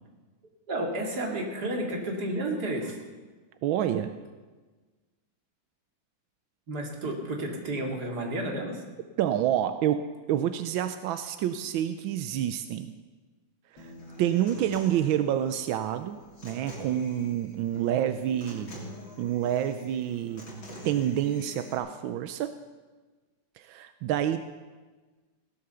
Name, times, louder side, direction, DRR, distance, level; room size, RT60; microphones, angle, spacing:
voice 1, 0.7-3.0 6.7-8.8, right 1 dB, 55° right, 1 dB, 2.8 m, -31 dB
voice 2, 3.6-4.1 9.2-12.9 13.8-13.9 14.2-18.8 19.2-20.5 20.8-22.5 23.6-24.4, right 11 dB, 90° right, 10 dB, 1.4 m, -28 dB
Human voice / Acoustic guitar, 13.8-21.8, left 1 dB, 80° left, 4.2 m, -45 dB
17.0 x 11.5 x 6.9 m, 1.3 s
omnidirectional pair, 2.1 m